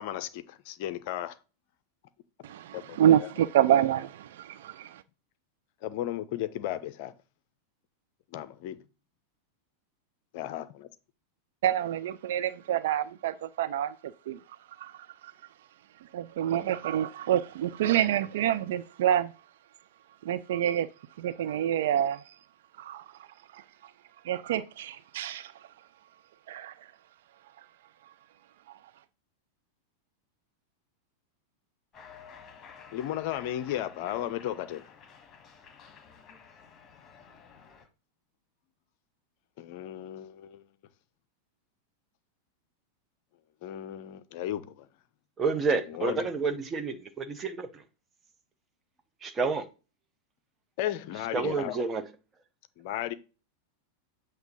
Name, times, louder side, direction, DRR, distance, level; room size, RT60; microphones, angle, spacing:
voice 1, 0.0-1.3 2.7-3.3 5.8-7.1 8.3-8.8 10.3-10.9 32.9-34.8 39.6-40.6 43.6-44.9 46.0-46.2 50.8-51.8 52.8-53.1, left 12 dB, 45° left, 0.5 m, -35 dB
voice 2, 2.4-5.0 11.6-14.4 14.8-14.9 16.1-19.3 20.2-20.9 21.2-22.2 22.8-23.0 23.5-23.6 24.3-25.5 26.5-26.7, right 11 dB, 55° right, 0.3 m, -27 dB
Cheering, 31.9-37.9, left 6 dB, 20° left, 1.6 m, -52 dB
voice 3, 45.4-47.8 49.2-49.6 51.3-52.0, right 4 dB, 20° right, 0.9 m, -29 dB
8.0 x 2.7 x 5.3 m
figure-of-eight pair, 90°, 0 cm